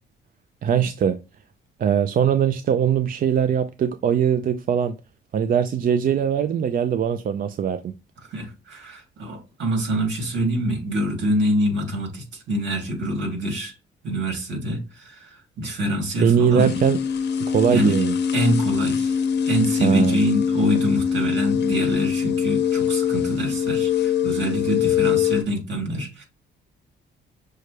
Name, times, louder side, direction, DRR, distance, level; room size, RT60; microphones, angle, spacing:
voice 1, 0.6-1.2 1.8-4.9 5.3-7.9 16.2-17.0 17.5-18.2 19.8-20.2, right 8 dB, 45° right, 0.4 m, -21 dB
voice 2, 8.3-13.7 14.0-16.8 17.7-17.9 18.3-19.2 19.4-26.2, equal, 65° right, 2.3 m, -25 dB
sound 1, 16.6-25.4, left 8 dB, 60° left, 0.7 m, -23 dB
6.2 x 2.2 x 3.2 m
cardioid pair, 90°, 20 cm